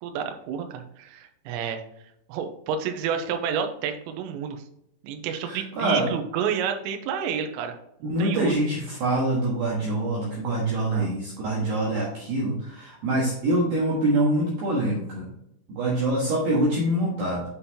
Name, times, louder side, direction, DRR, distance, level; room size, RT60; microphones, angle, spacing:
voice 1, 0.0-1.8 2.3-4.6 5.0-7.8 8.0-8.5 10.9-11.2, right 7 dB, 85° right, 6 dB, 3.3 m, -30 dB
voice 2, 5.5-6.1 8.0-15.3 15.7-17.4, right 1 dB, 60° right, -5 dB, 2.6 m, -25 dB
8.5 x 5.3 x 2.8 m, 0.78 s
omnidirectional pair, 5.9 m